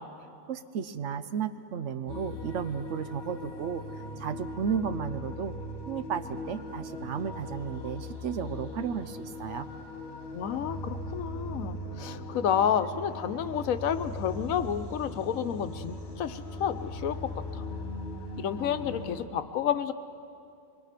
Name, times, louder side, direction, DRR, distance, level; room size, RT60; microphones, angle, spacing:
voice 1, 0.5-5.5 5.9-9.7, right 7 dB, 65° right, 11 dB, 1.0 m, -33 dB
sound 1, 2.1-19.3, left 1 dB, 35° left, 1.7 m, -39 dB
voice 2, 10.3-17.7 18.4-19.9, left 8 dB, 90° left, 11 dB, 1.2 m, -30 dB
24.5 x 21.0 x 5.9 m, 2.5 s
omnidirectional pair, 1.4 m